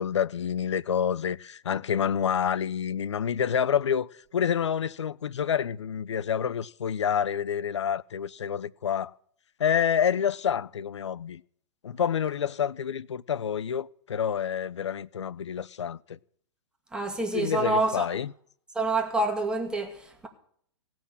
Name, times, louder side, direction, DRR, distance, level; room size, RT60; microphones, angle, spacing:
voice 1, 0.0-9.1 9.6-11.4 11.8-16.2 17.3-18.3, left 8 dB, 85° left, 0.5 m, -28 dB
voice 2, 16.9-18.1 18.7-20.3, right 2 dB, 5° right, 2.2 m, -27 dB
16.5 x 6.0 x 8.4 m
hypercardioid pair, 120°, 15 cm